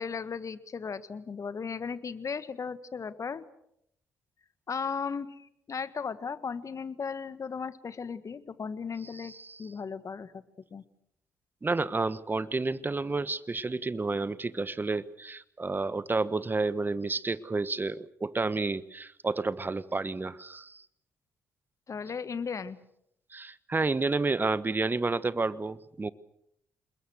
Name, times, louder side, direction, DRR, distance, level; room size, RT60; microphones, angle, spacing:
voice 1, 0.0-3.4 4.7-9.3 9.6-10.4 10.7-10.8 21.9-22.8, left 5 dB, 45° left, 14 dB, 1.6 m, -36 dB
voice 2, 9.1-9.6 11.6-20.8 23.3-26.1, right 3 dB, 25° right, 16 dB, 1.3 m, -30 dB
27.5 x 21.5 x 6.5 m, 0.75 s
hypercardioid pair, 45°, 7 cm